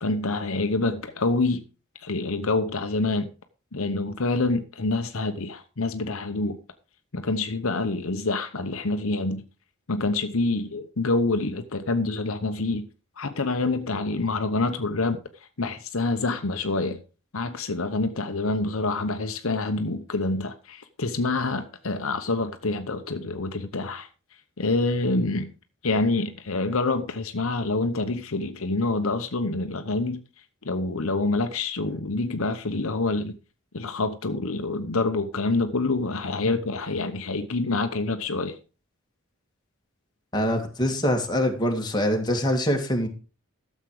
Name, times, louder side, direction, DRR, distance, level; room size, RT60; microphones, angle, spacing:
voice 1, 0.0-1.6 2.0-3.3 3.7-6.6 7.1-9.4 9.9-12.9 13.2-15.2 15.6-17.0 17.3-24.1 24.6-25.5 25.8-30.2 30.6-33.4 33.7-38.5, left 3 dB, 65° left, 1.0 m, -26 dB
voice 2, 40.3-43.1, equal, 20° left, 2.0 m, -24 dB
13.0 x 7.5 x 4.9 m
head